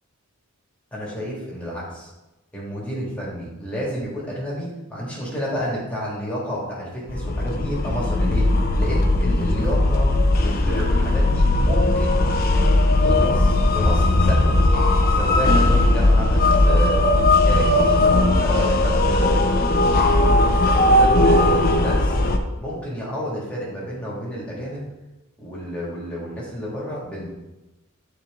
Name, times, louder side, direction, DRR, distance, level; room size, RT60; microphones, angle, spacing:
voice 1, 0.9-2.1 2.5-8.5 8.8-10.1 10.4-12.3 13.0-14.6 15.1-17.1 17.4-19.7 20.1-22.2 22.6-24.9 25.4-27.3, equal, 5° left, -6 dB, 2.1 m, -30 dB
sound 1, 7.1-22.4, left 2 dB, 45° left, 0.7 m, -18 dB
9.9 x 4.4 x 3.7 m, 1.0 s
head